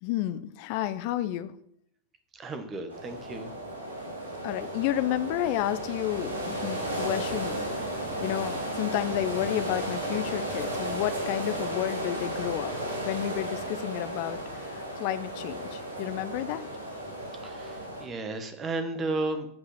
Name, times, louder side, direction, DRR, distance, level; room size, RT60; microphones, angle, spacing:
voice 1, 0.0-1.5 4.4-12.7 13.0-16.7, left 13 dB, 45° left, 12 dB, 0.9 m, -31 dB
voice 2, 2.3-3.5 17.4-19.5, right 2 dB, 25° right, 8 dB, 1.9 m, -33 dB
sound 1, 2.9-18.0, right 1 dB, 75° right, 3.7 m, -34 dB
14.5 x 5.9 x 5.9 m, 0.70 s
figure-of-eight pair, 90°, 0 cm